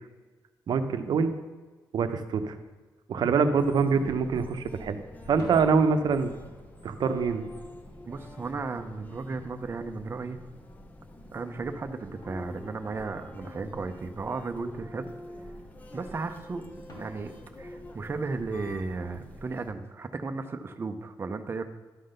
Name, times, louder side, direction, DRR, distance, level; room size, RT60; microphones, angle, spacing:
voice 1, 0.7-1.3 1.9-2.6 3.1-5.0 5.3-6.3 6.8-7.5, right 5 dB, 65° right, 9 dB, 0.7 m, -25 dB
sound 1, 3.2-3.7 5.2-10.0 11.7-11.8 12.2-13.1 16.9-18.6, equal, 55° left, 3.0 m, -51 dB
sound 2, 3.6-19.7, left 1 dB, 20° left, 0.7 m, -46 dB
voice 2, 8.1-10.4 11.3-15.1 15.9-17.3 17.6-21.6, right 3 dB, 30° right, 7 dB, 0.6 m, -35 dB
11.5 x 3.9 x 6.5 m, 1.3 s
wide cardioid pair, 145°, 8 cm